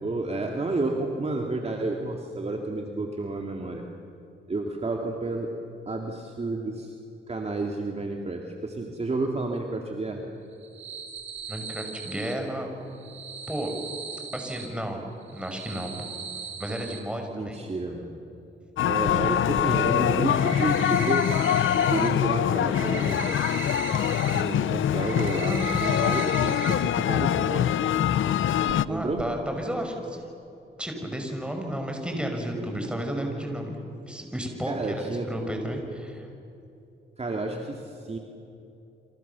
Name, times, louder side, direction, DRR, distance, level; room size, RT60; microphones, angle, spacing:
voice 1, 0.0-3.8 4.5-5.5 5.9-6.9 7.3-10.2 17.3-18.2 18.9-21.3 21.9-23.4 24.3-27.9 28.9-29.2 34.7-35.3 37.2-38.2, right 2 dB, 30° right, 2 dB, 2.5 m, -30 dB
sound 1, 10.5-12.3 12.9-14.7 15.2-17.0 19.1-19.2 19.6-19.7 20.1-22.1 22.4-24.4 24.8-26.7 27.1-27.2 27.6-27.7 28.7-28.9 29.2-29.3, right 6 dB, 75° right, 3.3 m, -38 dB
voice 2, 11.5-12.7 13.5-13.7 14.3-15.0 15.3-15.9 16.6-17.6 25.4-25.8 28.9-30.2 30.8-33.8 34.1-36.3, right 1 dB, 5° right, 3 dB, 5.8 m, -32 dB
sound 2, 18.8-28.9, left 10 dB, 75° left, 0.7 m, -24 dB
28.5 x 26.0 x 7.1 m, 2.8 s
cardioid pair, 95°, 20 cm